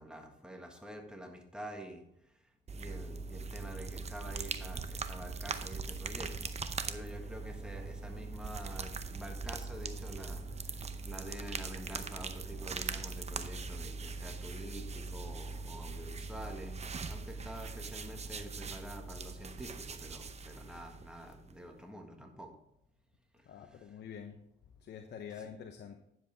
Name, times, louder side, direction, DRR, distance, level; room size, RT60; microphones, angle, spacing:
voice 1, 0.0-6.6 6.8-16.8 17.0-22.5 23.4-24.0 25.3-25.5, equal, 5° right, 3 dB, 1.6 m, -48 dB
sound 1, 2.7-21.6, right 4 dB, 35° right, 0.7 m, -41 dB
voice 2, 23.5-24.4 24.8-26.0, left 7 dB, 60° left, 5 dB, 0.9 m, -46 dB
10.0 x 7.4 x 3.5 m, 0.77 s
cardioid pair, 90°, 20 cm